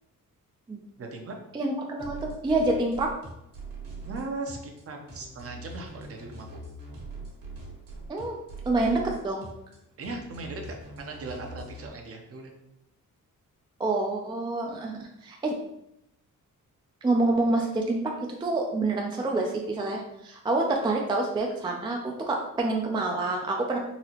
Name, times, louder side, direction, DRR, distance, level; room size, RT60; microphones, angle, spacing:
voice 1, 1.0-1.4 4.0-6.6 10.0-12.6, right 3 dB, 45° right, 3 dB, 0.7 m, -38 dB
voice 2, 1.5-3.1 8.1-8.4 8.7-9.4 13.8-15.6 17.0-18.1 18.4-23.8, right 2 dB, 15° right, 1 dB, 0.3 m, -27 dB
sound 1, 2.0-11.9, right 3 dB, 65° right, 1.5 m, -42 dB
4.0 x 2.8 x 2.9 m, 0.83 s
cardioid pair, 130°, 33 cm